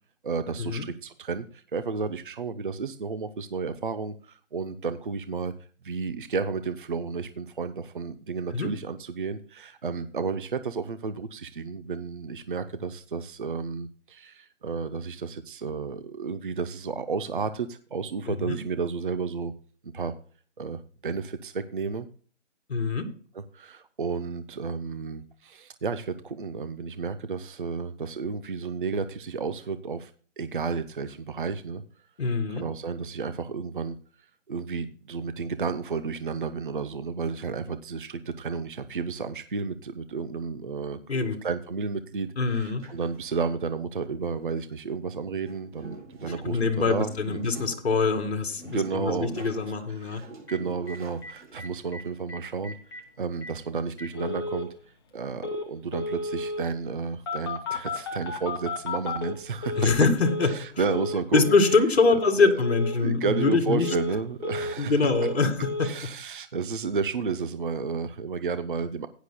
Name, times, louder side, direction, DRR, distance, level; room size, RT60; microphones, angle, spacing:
voice 1, 0.2-5.5 5.8-19.5 19.8-20.1 20.6-22.1 23.3-31.8 32.5-34.0 34.5-47.4 48.7-49.4 50.0-54.7 55.1-59.9 60.4-61.5 62.1-62.5 63.0-65.1 65.8-69.1, right 5 dB, 45° right, 11 dB, 0.6 m, -32 dB
voice 2, 18.3-18.6 22.7-23.1 32.2-32.6 41.1-41.4 42.4-42.8 46.4-50.2 59.8-60.5 61.3-63.9 64.8-65.9, left 4 dB, 60° left, 4 dB, 2.2 m, -24 dB
sound 1, 42.8-43.3 44.6-44.8 45.4-51.8, right 3 dB, 65° right, 5.5 m, -46 dB
Telephone, 50.5-50.6 50.9-51.0 51.2-51.3 51.6-52.0 52.3-52.4 52.6-53.0 53.4-53.5 54.0-54.7 55.4-55.7 55.9-56.7 57.3-60.0 60.2-60.6 60.8-61.2 61.4-61.8 62.0-62.4 62.6-63.0 63.2-63.6 63.8-64.8 65.0-65.4 65.6-65.9, left 3 dB, 20° left, 1.1 m, -33 dB
16.0 x 10.0 x 2.2 m, 0.42 s
hypercardioid pair, 165°, 37 cm